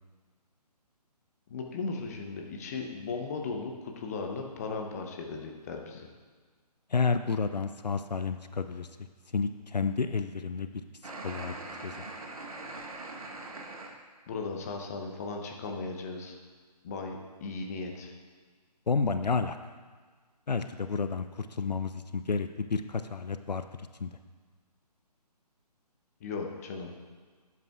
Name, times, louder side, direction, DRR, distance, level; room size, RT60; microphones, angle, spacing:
voice 1, 1.5-6.1 14.3-16.4 16.8-18.1 26.2-27.0, left 4 dB, 25° left, 2 dB, 0.7 m, -37 dB
voice 2, 6.9-8.9 9.3-10.7 11.2-11.6 11.8-12.1 18.9-19.6 20.5-23.6 24.0-24.2, left 4 dB, 80° left, 10 dB, 0.5 m, -30 dB
sound 1, 11.0-13.9, right 2 dB, 60° right, 1.1 m, -42 dB
12.0 x 8.3 x 2.4 m, 1.5 s
figure-of-eight pair, 140°, 21 cm